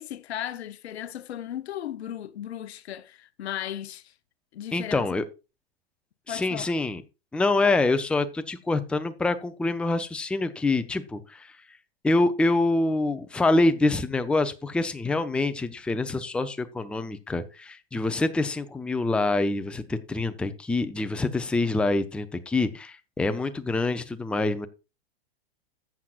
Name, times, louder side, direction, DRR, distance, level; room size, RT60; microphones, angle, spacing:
voice 1, 0.0-4.1 4.5-5.1 6.3-6.7, left 11 dB, 80° left, 0.8 m, -36 dB
voice 2, 4.7-5.2 6.3-7.0 7.3-11.6 12.0-24.7, left 2 dB, 5° left, 0.5 m, -26 dB
14.0 x 7.6 x 2.4 m
hypercardioid pair, 120°, 32 cm